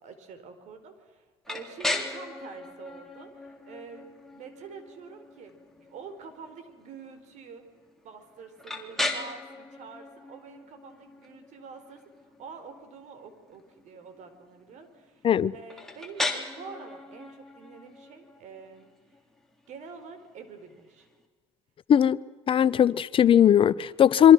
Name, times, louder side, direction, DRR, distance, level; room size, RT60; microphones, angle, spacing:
voice 1, 0.0-4.0 4.3-7.6 8.0-18.9 19.7-21.1, right 5 dB, 60° right, 4.6 m, -46 dB
sound 1, 1.4-21.2, left 2 dB, 5° left, 3.7 m, -38 dB
voice 2, 22.5-24.3, left 9 dB, 40° left, 0.7 m, -18 dB
26.5 x 25.0 x 6.2 m
supercardioid pair, 85°, 14 cm